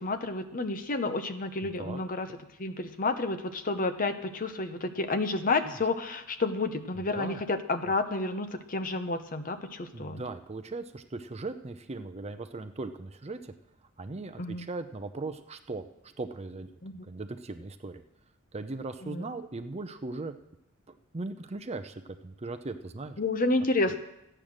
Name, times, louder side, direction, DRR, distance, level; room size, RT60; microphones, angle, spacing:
voice 1, 0.0-2.3 2.6-10.2 14.4-14.6 16.8-17.0 19.0-19.3 23.2-24.0, left 3 dB, 40° left, 8 dB, 0.9 m, -30 dB
voice 2, 1.6-2.0 5.6-5.7 7.0-7.4 9.9-13.5 14.0-16.7 17.1-18.0 18.5-20.3 21.1-23.2, right 3 dB, 30° right, 9 dB, 0.6 m, -38 dB
14.0 x 8.9 x 6.5 m, 0.87 s
head